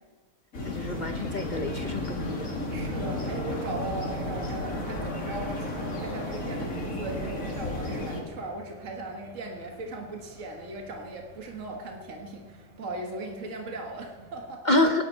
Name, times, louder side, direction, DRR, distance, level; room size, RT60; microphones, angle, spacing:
sound 1, 0.5-8.2, left 1 dB, 70° left, 2.7 m, -33 dB
voice 1, 0.6-2.6 14.6-15.1, left 2 dB, 40° left, 6 dB, 0.8 m, -27 dB
sound 2, 0.8-14.6, left 1 dB, 45° right, 1.7 m, -49 dB
voice 2, 2.7-14.7, right 2 dB, 60° right, 2 dB, 1.9 m, -38 dB
25.5 x 11.0 x 4.5 m, 1.4 s
omnidirectional pair, 1.5 m